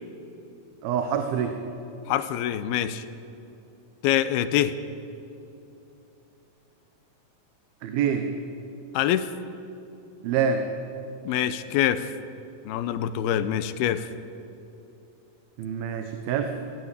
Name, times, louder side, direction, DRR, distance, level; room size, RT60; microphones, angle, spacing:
voice 1, 0.8-1.6 7.8-8.3 10.2-10.7 15.6-16.5, right 7 dB, 80° right, 6 dB, 2.9 m, -26 dB
voice 2, 2.1-3.0 4.0-4.8 8.9-9.3 11.3-12.1 12.7-14.1, left 11 dB, 90° left, 13 dB, 2.7 m, -25 dB
21.0 x 17.0 x 8.2 m, 2.9 s
omnidirectional pair, 4.3 m